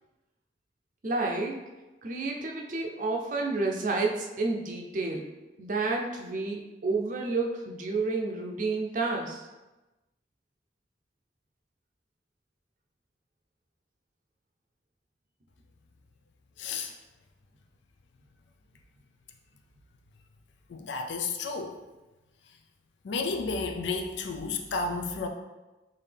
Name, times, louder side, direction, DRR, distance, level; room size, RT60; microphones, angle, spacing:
voice 1, 1.0-1.6 2.0-5.3 5.6-9.4, right 3 dB, 45° right, 1 dB, 0.5 m, -30 dB
voice 2, 16.6-16.9 20.7-21.8 23.0-25.3, left 4 dB, 80° left, 3 dB, 0.4 m, -32 dB
3.8 x 2.7 x 3.3 m, 1.1 s
head